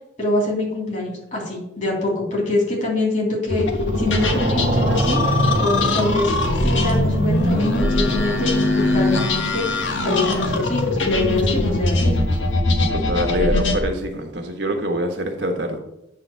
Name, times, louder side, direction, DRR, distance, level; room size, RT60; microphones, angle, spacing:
voice 1, 0.2-3.7 4.0-5.2 5.6-6.3 6.6-9.6 10.0-12.2, left 2 dB, 40° left, -3 dB, 3.3 m, -24 dB
sound 1, 3.5-13.8, left 1 dB, 85° left, 1.2 m, -21 dB
sound 2, 3.7-12.5, right 2 dB, 40° right, 0.6 m, -31 dB
voice 2, 12.9-15.8, equal, 70° right, 4 dB, 1.2 m, -25 dB
8.6 x 3.9 x 6.9 m, 0.86 s
head